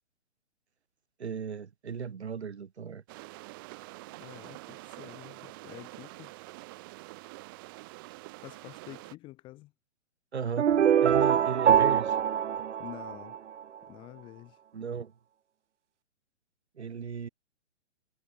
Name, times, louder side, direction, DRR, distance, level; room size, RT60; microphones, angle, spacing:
voice 1, 1.2-3.0 10.3-10.7 11.0-12.2 14.7-15.1 16.8-17.3, right 6 dB, 65° right, 1.9 m, -35 dB
sound 1, 3.1-9.1, right 24 dB, 20° right, 0.6 m, -46 dB
voice 2, 4.0-6.3 8.4-9.7 12.8-13.4 13.9-14.6, left 18 dB, 15° left, 0.8 m, -48 dB
sound 2, 10.6-13.6, right 9 dB, 80° right, 0.5 m, -24 dB
figure-of-eight pair, 125°, 35 cm